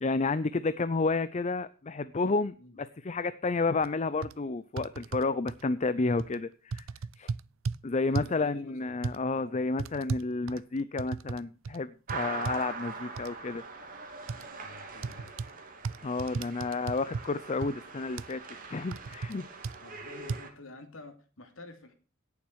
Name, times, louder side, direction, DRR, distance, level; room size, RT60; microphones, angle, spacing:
voice 1, 0.0-6.8 7.2-7.3 7.8-13.6 16.0-18.4 18.7-19.5, left 3 dB, 35° left, 14 dB, 0.5 m, -31 dB
sound 1, 3.8-3.9 4.2-4.3 4.8-5.6 6.2-6.4 6.7-7.8 8.1-8.4 9.0-9.2 9.8-11.4 11.6-11.8 12.1-12.6 13.2-13.3 14.3-14.4 15.0-15.5 15.8-17.3 17.6-17.7 18.2-18.3 18.9-19.3 19.6-19.8 20.3-20.4, right 4 dB, 70° right, 0.5 m, -35 dB
voice 2, 8.0-8.9 9.3-9.6 14.6-15.3 19.8-21.9, left 2 dB, 75° left, 6 dB, 2.8 m, -49 dB
sound 2, 12.1-20.5, right 4 dB, 45° right, 2.5 m, -42 dB
17.5 x 7.2 x 4.7 m, 0.36 s
head